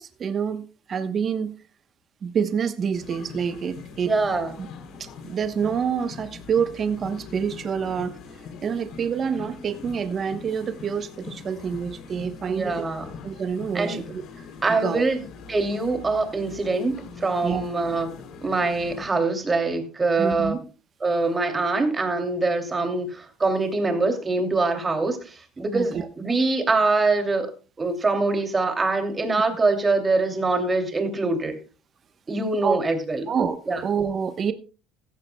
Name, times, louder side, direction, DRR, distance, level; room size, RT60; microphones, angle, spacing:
voice 1, 0.0-1.5 2.2-4.1 4.6-4.7 5.0-8.1 8.6-12.8 13.2-14.2 14.8-15.0 17.4-17.6 20.2-20.6 25.7-26.0 32.6-32.8 33.3-33.6 33.8-34.5, right 7 dB, 35° right, 10 dB, 1.0 m, -27 dB
sound 1, 2.9-19.1, left 5 dB, 60° left, 3.2 m, -42 dB
voice 2, 4.0-4.5 12.5-13.1 13.7-14.0 14.6-15.2 15.5-18.1 18.4-20.6 21.0-27.5 27.8-31.6 32.3-33.3 33.7-33.8, right 3 dB, 20° right, 5 dB, 2.7 m, -24 dB
15.0 x 14.5 x 2.3 m, 0.34 s
cardioid pair, 120°, 0 cm